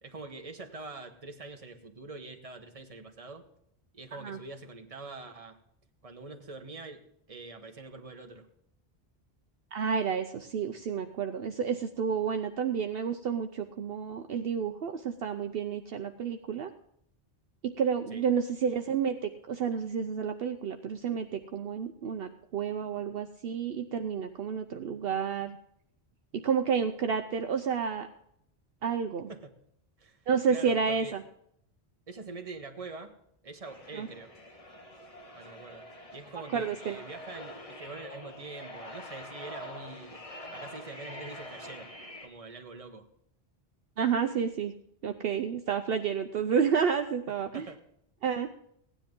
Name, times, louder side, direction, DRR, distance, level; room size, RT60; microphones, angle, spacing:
voice 1, 0.0-3.5 3.9-5.6 6.0-8.5 18.1-18.2 29.3-29.6 30.0-31.2 32.1-33.2 33.4-34.3 35.3-35.8 36.1-40.2 40.5-41.9 42.2-43.1 47.5-47.8, right 3 dB, 35° right, 5 dB, 1.2 m, -44 dB
voice 2, 9.7-16.7 17.6-25.6 26.3-28.1 28.8-29.3 30.3-31.1 34.0-34.1 36.5-37.0 44.0-44.7 45.0-47.7 48.2-48.5, right 7 dB, 65° right, 7 dB, 0.8 m, -30 dB
sound 1, 33.6-42.3, left 1 dB, 35° left, 1.5 m, -45 dB
16.5 x 10.0 x 3.7 m, 0.72 s
omnidirectional pair, 1.1 m